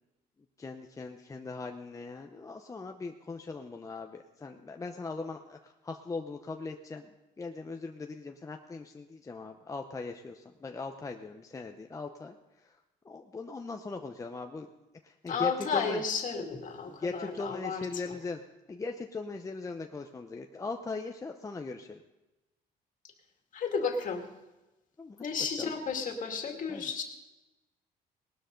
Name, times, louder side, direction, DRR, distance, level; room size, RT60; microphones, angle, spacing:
voice 1, 0.6-7.1 7.4-12.3 12.6-12.7 13.0-14.7 15.0-16.0 16.9-18.4 18.7-22.0 25.0-25.2 25.6-25.7 26.7-26.8, left 3 dB, 20° left, 4 dB, 0.8 m, -39 dB
voice 2, 15.3-18.1 23.5-24.2 25.2-27.0, left 5 dB, 50° left, 3 dB, 2.3 m, -33 dB
19.0 x 12.5 x 3.9 m, 1.0 s
cardioid pair, 110°, 17 cm